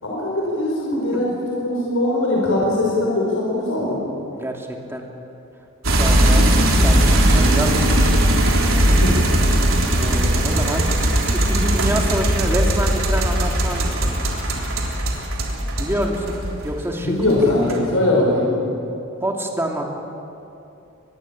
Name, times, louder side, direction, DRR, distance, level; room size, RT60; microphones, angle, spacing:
voice 1, 0.0-4.1 6.3-6.4 9.0-9.2 17.0-18.5, left 1 dB, 85° left, -3 dB, 5.4 m, -21 dB
voice 2, 4.3-5.1 6.0-6.5 6.8-8.4 10.0-10.9 11.4-14.1 15.8-17.1 17.4-17.6 19.2-19.8, right 1 dB, 10° right, 0 dB, 2.7 m, -27 dB
sound 1, 5.8-16.8 17.1-17.8, right 1 dB, 80° right, 3.7 m, -18 dB
24.5 x 21.0 x 7.4 m, 2.7 s
head